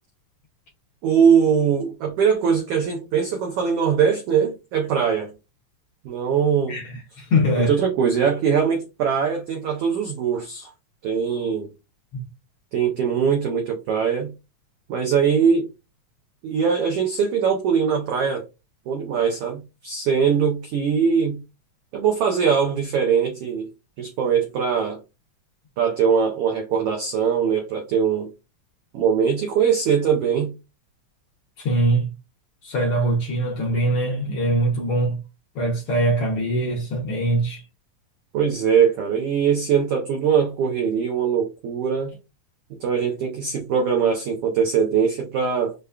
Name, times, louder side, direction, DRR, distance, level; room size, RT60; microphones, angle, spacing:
voice 1, 1.0-5.3 6.0-6.8 7.7-10.7 11.0-11.7 12.7-14.3 14.9-15.7 16.4-18.5 18.9-21.4 21.9-23.7 24.0-25.0 25.8-28.3 28.9-30.5 38.3-42.1 42.8-45.7, right 7 dB, 80° right, 1.3 m, -21 dB
voice 2, 6.7-7.8 12.1-12.2 31.6-32.1 32.6-35.2 35.5-37.6, right 1 dB, 75° left, 1.3 m, -22 dB
5.0 x 2.2 x 2.2 m
omnidirectional pair, 3.3 m